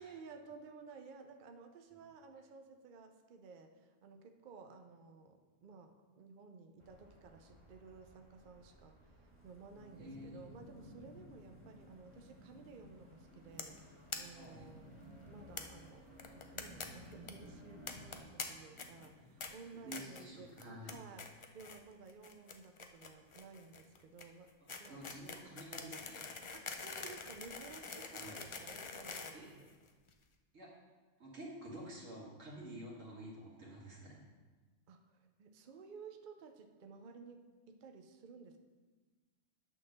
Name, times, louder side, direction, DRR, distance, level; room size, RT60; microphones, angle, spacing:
voice 1, 0.0-16.1 16.3-24.5 24.8-25.0 26.5-29.7 34.9-37.4 37.7-38.6, right 5 dB, 50° right, 5 dB, 0.6 m, -55 dB
sound 1, 6.8-18.2, equal, 25° right, 1.4 m, -62 dB
Thunderstorm / Rain, 9.3-21.5, left 1 dB, 10° left, 1.2 m, -58 dB
voice 2, 10.0-10.4 14.3-14.7 19.7-20.9 24.9-26.3 28.1-28.4 29.3-29.5 30.5-30.7 31.2-34.2, right 1 dB, 80° right, -4 dB, 2.3 m, -50 dB
sound 2, 13.6-13.8 14.1-14.2 14.4-14.5 14.8-14.9 15.6-15.7 16.2-16.9 17.1-17.3 17.9-18.4 18.8-19.1 19.4-19.5 19.9-20.2 20.6-20.9 21.2-21.8 22.1-30.1, left 4 dB, 50° left, 0.3 m, -45 dB
9.0 x 3.9 x 6.3 m, 1.3 s
omnidirectional pair, 1.3 m